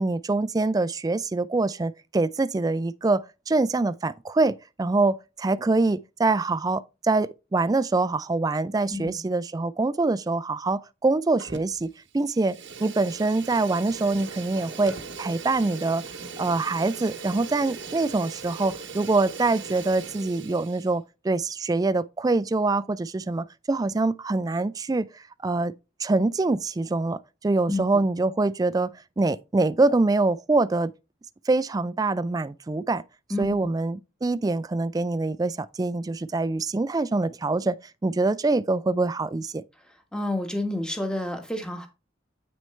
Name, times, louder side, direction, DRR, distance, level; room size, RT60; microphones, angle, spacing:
voice 1, 0.0-16.0 16.4-25.1 25.4-25.7 26.0-28.9 29.2-30.9 31.5-33.0 33.4-37.8 38.0-39.6, right 3 dB, 20° right, 0.3 m, -25 dB
voice 2, 8.9-9.2 27.7-27.8 33.3-33.7 40.1-41.9, left 1 dB, 5° left, 1.4 m, -29 dB
Fire, 11.4-11.9 12.2-20.9, right 5 dB, 60° right, 0.9 m, -39 dB
8.8 x 6.2 x 3.2 m
head